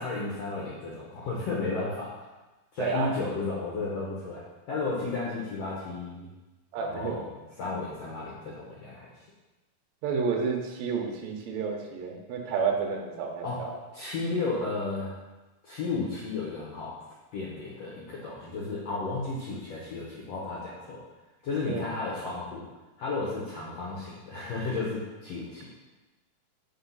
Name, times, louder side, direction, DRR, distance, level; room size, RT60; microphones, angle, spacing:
voice 1, 0.0-2.1 2.7-6.3 6.7-7.3 7.6-9.1 13.4-15.2 15.6-17.0 17.3-21.0 21.4-22.6 23.0-25.7, left 3 dB, 75° left, -6 dB, 1.5 m, -33 dB
voice 2, 2.8-3.1 6.7-7.2 10.0-13.7 21.7-21.8, right 5 dB, 80° right, 1 dB, 1.6 m, -30 dB
4.4 x 4.3 x 5.5 m, 1.1 s
omnidirectional pair, 4.2 m